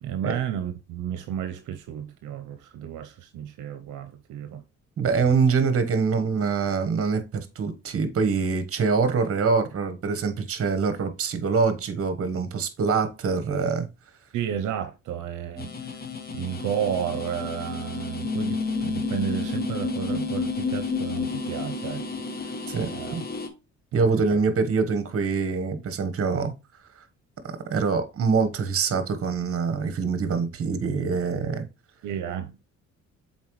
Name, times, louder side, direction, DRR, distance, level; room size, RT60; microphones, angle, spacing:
voice 1, 0.0-4.6 5.2-5.3 14.3-16.0 16.3-22.0 22.4-22.6 22.9-23.2 23.9-24.4 32.0-32.5, right 9 dB, 80° right, 0.7 m, -32 dB
voice 2, 5.0-13.9 22.7-23.3 23.9-26.5 27.4-31.7, right 5 dB, 50° right, 1.3 m, -24 dB
sound 1, 15.6-23.5, left 4 dB, 30° left, 1.1 m, -31 dB
7.2 x 4.3 x 3.1 m
cardioid pair, 90°, 30 cm